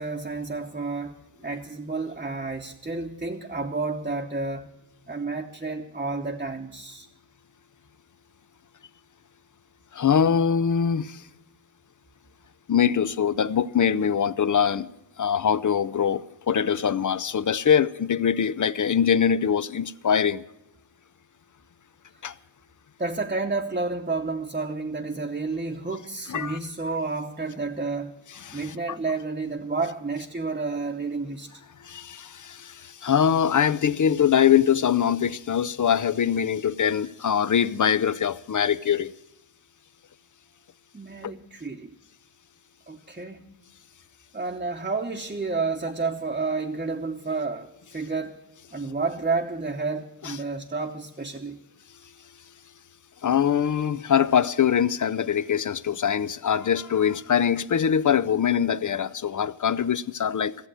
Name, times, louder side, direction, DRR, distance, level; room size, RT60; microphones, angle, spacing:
voice 1, 0.0-4.7 5.1-7.1 23.0-28.1 28.5-31.5 40.9-41.9 42.9-43.6 44.3-48.4 48.7-51.6, right 3 dB, 20° right, 0.9 m, -30 dB
voice 2, 9.9-11.2 12.7-14.9 15.2-20.4 22.2-22.3 26.3-26.6 28.4-28.7 31.8-39.1 41.2-41.3 50.2-50.3 53.2-60.5, left 8 dB, 40° left, 0.5 m, -23 dB
15.0 x 7.7 x 9.7 m
wide cardioid pair, 110°, 49 cm